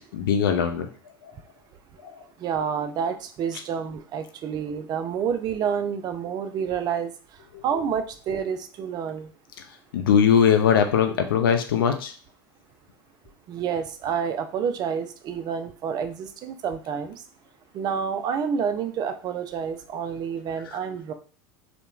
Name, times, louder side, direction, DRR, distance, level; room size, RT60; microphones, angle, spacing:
voice 1, 0.1-0.9 9.9-12.1, left 8 dB, 70° left, 6 dB, 0.4 m, -20 dB
voice 2, 2.4-7.1 7.6-9.3 13.5-17.1 17.7-21.1, right 7 dB, 35° right, 8 dB, 0.4 m, -28 dB
2.9 x 2.1 x 2.3 m, 0.40 s
figure-of-eight pair, 80°, 12 cm